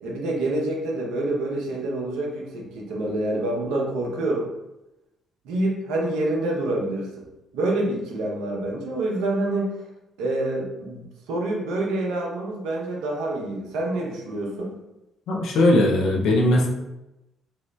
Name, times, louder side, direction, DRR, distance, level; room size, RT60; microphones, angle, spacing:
voice 1, 0.0-4.5 5.4-7.3 7.5-9.8 10.2-14.7, right 2 dB, 70° right, -1 dB, 0.6 m, -27 dB
voice 2, 15.3-16.7, left 1 dB, 65° left, 0 dB, 0.5 m, -19 dB
2.9 x 2.8 x 2.2 m, 0.95 s
figure-of-eight pair, 45°, 0 cm